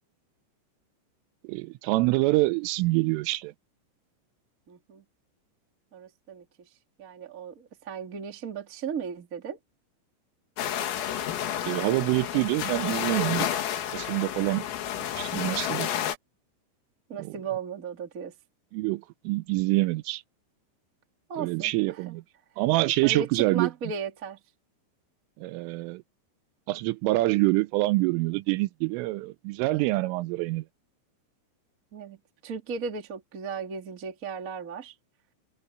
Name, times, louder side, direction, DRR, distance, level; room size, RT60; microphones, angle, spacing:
voice 1, 1.5-3.5 11.6-13.5 13.9-14.7 15.2-15.9 18.7-20.2 21.4-22.2 22.6-23.7 25.4-26.0 26.7-30.6, right 20 dB, 85° right, 3.2 m, -26 dB
voice 2, 4.7-5.0 5.9-9.6 17.1-18.4 21.3-22.2 22.5-22.6 23.0-24.4 31.9-35.0, right 6 dB, 30° right, 1.5 m, -36 dB
sound 1, 10.6-16.2, left 10 dB, 85° left, 5.0 m, -30 dB
omnidirectional pair, 5.8 m